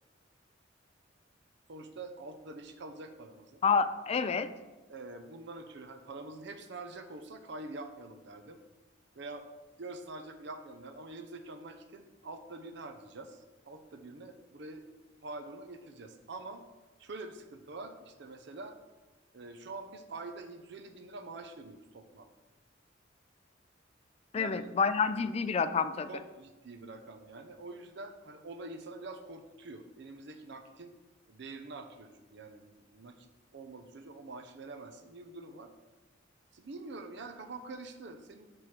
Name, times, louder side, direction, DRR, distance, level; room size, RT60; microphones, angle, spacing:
voice 1, 1.7-3.6 4.9-8.6 9.1-9.5 9.8-14.8 15.2-16.6 17.0-18.8 19.3-22.3 24.3-24.7 26.1-30.9 31.3-33.3 33.5-35.7 36.5-38.5, right 2 dB, 65° right, 8 dB, 0.6 m, -46 dB
voice 2, 3.6-4.5 24.3-26.1, left 5 dB, 35° left, 12 dB, 0.3 m, -28 dB
6.1 x 4.3 x 4.8 m, 1.2 s
head